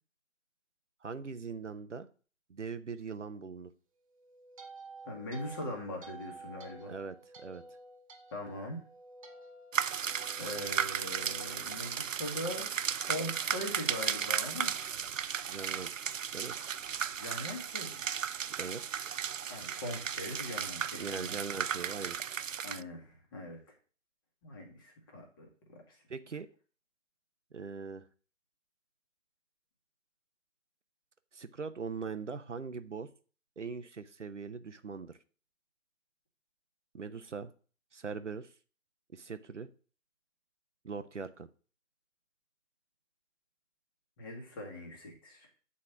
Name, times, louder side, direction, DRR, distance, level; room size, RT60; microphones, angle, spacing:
voice 1, 1.0-2.1 2.5-3.7 6.9-7.6 15.5-15.9 16.3-16.5 18.6-18.8 20.9-22.2 26.1-26.5 27.5-28.1 31.3-33.1 33.6-35.2 36.9-37.5 37.9-38.5 39.1-39.7 40.8-41.5, right 5 dB, 70° right, 11 dB, 0.8 m, -41 dB
sound 1, 4.0-12.4, right 2 dB, 25° right, 1.0 m, -52 dB
voice 2, 5.0-6.9 8.3-8.8 10.4-12.7 13.0-14.7 17.2-18.1 19.5-21.4 22.6-23.6 24.4-26.0 44.2-45.5, left 1 dB, 15° left, 2 dB, 1.5 m, -41 dB
sound 2, 9.7-22.8, right 8 dB, 85° right, 0.5 m, -35 dB
8.6 x 4.3 x 5.9 m, 0.38 s
figure-of-eight pair, 150°, 38 cm